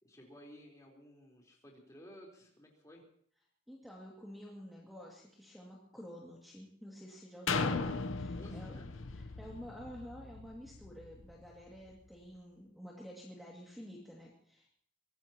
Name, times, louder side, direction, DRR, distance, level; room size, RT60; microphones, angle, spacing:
voice 1, 0.0-3.1 8.4-8.9, equal, 15° left, -2 dB, 4.1 m, -55 dB
voice 2, 3.7-8.8 9.1-14.7, equal, ahead, -4 dB, 2.3 m, -50 dB
sound 1, 7.5-11.2 11.8-11.9, left 4 dB, 85° left, 1.0 m, -37 dB
23.5 x 18.5 x 3.0 m, 0.64 s
head